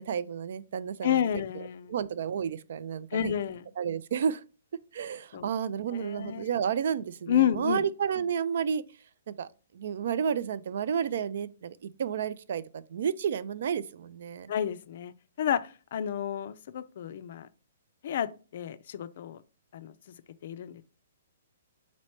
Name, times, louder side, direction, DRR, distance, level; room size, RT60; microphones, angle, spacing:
voice 1, 0.0-1.2 1.6-3.3 3.8-4.4 4.9-8.8 9.3-9.5 9.7-14.5, right 7 dB, 60° right, 0.3 m, -31 dB
voice 2, 1.0-1.9 3.1-3.6 5.3-5.5 5.9-6.5 7.3-7.8 14.5-17.5 18.0-19.4 19.7-19.9 20.4-20.8, left 10 dB, 55° left, 0.3 m, -30 dB
4.0 x 3.1 x 3.0 m
hypercardioid pair, 130°, 0 cm